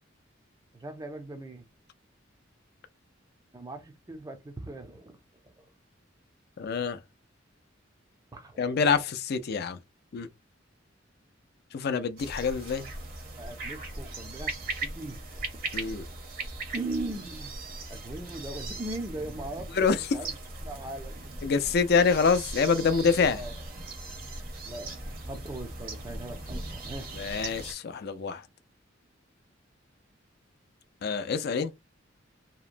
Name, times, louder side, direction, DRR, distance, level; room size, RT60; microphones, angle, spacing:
voice 1, 0.7-1.6 3.5-5.2 5.6-5.7 8.3-8.7 13.4-14.5 14.8-15.2 16.7-17.6 17.9-20.4 20.6-21.5 23.3-23.5 24.7-24.9 25.3-27.1, right 2 dB, 20° right, 0.5 m, -39 dB
voice 2, 6.6-7.0 8.6-9.8 10.1-10.3 11.7-12.8 15.7-16.0 19.7-20.0 21.4-23.4 27.2-28.4 31.0-31.7, left 5 dB, 55° left, 0.4 m, -26 dB
sound 1, 12.2-27.7, right 2 dB, 50° right, 0.8 m, -39 dB
2.8 x 2.1 x 2.5 m
head